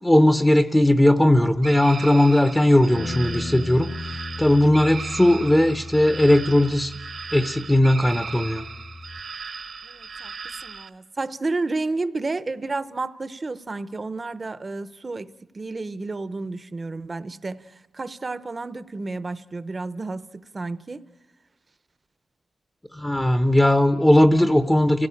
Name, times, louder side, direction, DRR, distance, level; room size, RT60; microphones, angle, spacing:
voice 1, 0.0-6.9 7.3-8.6 22.9-25.1, left 1 dB, 10° left, 0.7 m, -18 dB
sound 1, 1.6-10.9, right 5 dB, 55° right, 1.0 m, -37 dB
Bass guitar, 3.0-9.2, left 2 dB, 40° left, 0.9 m, -37 dB
voice 2, 9.8-10.3 10.6-21.1, right 3 dB, 25° right, 0.7 m, -31 dB
29.5 x 17.0 x 8.5 m
wide cardioid pair, 165°, 0 cm